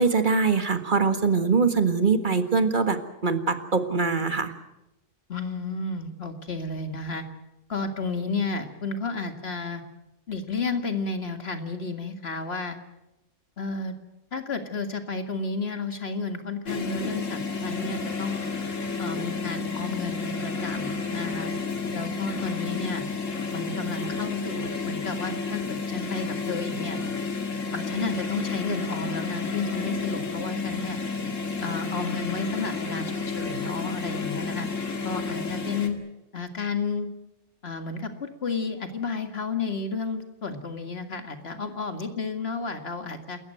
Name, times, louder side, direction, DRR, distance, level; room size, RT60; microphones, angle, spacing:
voice 1, 0.0-4.5, right 4 dB, 40° right, 8 dB, 1.8 m, -23 dB
voice 2, 5.3-7.2 7.7-9.8 10.3-12.8 13.6-13.9 14.3-18.4 19.0-21.5 21.9-23.1 23.5-27.0 27.7-31.0 31.6-34.7 35.0-36.0 36.3-37.1 37.6-43.4, left 4 dB, 50° left, 7 dB, 2.3 m, -32 dB
sound 1, 16.7-35.9, left 4 dB, 70° left, 2.3 m, -31 dB
28.0 x 14.5 x 9.2 m, 0.96 s
omnidirectional pair, 1.4 m